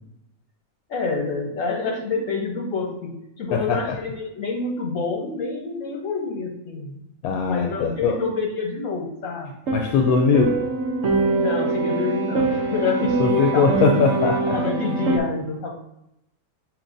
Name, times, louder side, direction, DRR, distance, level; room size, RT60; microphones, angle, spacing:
voice 1, 0.9-7.0 7.5-9.5 11.4-14.0 14.5-15.7, left 4 dB, 65° left, 1 dB, 1.3 m, -27 dB
voice 2, 3.5-4.0 7.2-8.2 9.7-10.6 13.2-14.6, left 5 dB, 80° left, 2 dB, 1.0 m, -21 dB
sound 1, 9.7-15.2, right 3 dB, 65° right, 1.1 m, -23 dB
6.6 x 3.1 x 2.6 m, 0.85 s
omnidirectional pair, 1.5 m